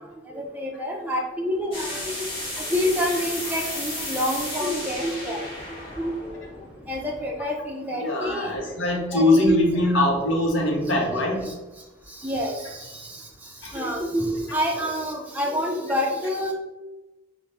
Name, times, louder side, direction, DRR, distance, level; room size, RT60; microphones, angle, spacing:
voice 1, 0.3-1.9 2.2-2.3 2.7-5.4 6.0-6.3 6.9-8.5 9.1-9.5 9.9-10.1 11.5-11.6 12.2-13.2 13.7-16.5, equal, 10° right, -1 dB, 0.4 m, -27 dB
sound 1, 1.7-7.4, left 1 dB, 30° left, 0.9 m, -34 dB
voice 2, 8.0-11.5 13.6-13.7, left 1 dB, 65° left, -1 dB, 0.8 m, -22 dB
4.1 x 2.0 x 3.2 m, 1.1 s
head